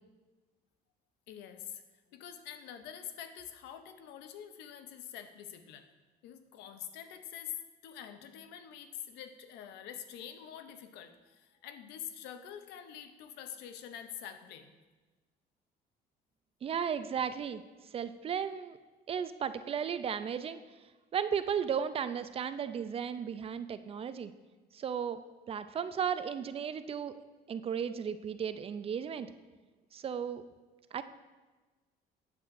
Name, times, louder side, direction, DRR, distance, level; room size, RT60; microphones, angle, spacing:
voice 1, 1.3-1.8 2.1-5.9 6.2-7.6 7.8-14.7, left 9 dB, 90° left, 9 dB, 0.6 m, -46 dB
voice 2, 16.6-17.6 17.9-18.8 19.1-20.6 21.1-24.3 24.7-25.2 25.5-27.1 27.5-29.3 29.9-30.4 30.9-31.0, right 7 dB, 35° right, 12 dB, 0.4 m, -35 dB
8.7 x 7.6 x 2.5 m, 1.3 s
cardioid pair, 110°, 17 cm